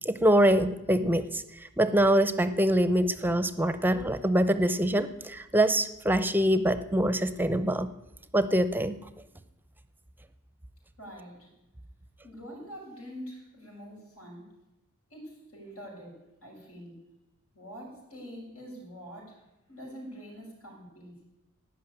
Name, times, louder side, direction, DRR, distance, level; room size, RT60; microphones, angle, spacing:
voice 1, 0.0-1.4 1.8-7.9 8.3-8.9, right 1 dB, 10° right, 12 dB, 0.6 m, -24 dB
voice 2, 11.0-11.5 12.2-14.4 15.1-16.1 16.4-17.0 17.5-19.4 19.7-21.2, equal, 80° left, -2 dB, 6.7 m, -45 dB
16.5 x 6.0 x 9.8 m, 0.94 s
head